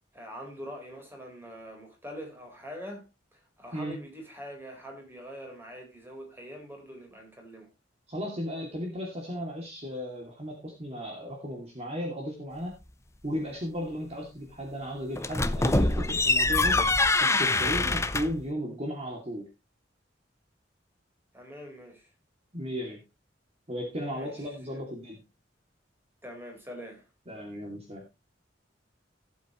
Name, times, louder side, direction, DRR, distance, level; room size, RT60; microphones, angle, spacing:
voice 1, 0.1-3.1 3.3-7.7 21.3-22.1 24.1-24.3 24.7-24.8 26.2-27.1, equal, 10° right, 4.3 m, -44 dB
voice 2, 8.1-12.8 13.2-16.8 17.2-19.5 22.5-23.0 23.7-25.2 27.3-28.0, equal, 35° right, 2.5 m, -35 dB
sound 1, 15.2-18.4, left 2 dB, 15° left, 0.7 m, -24 dB
16.5 x 8.1 x 3.1 m
head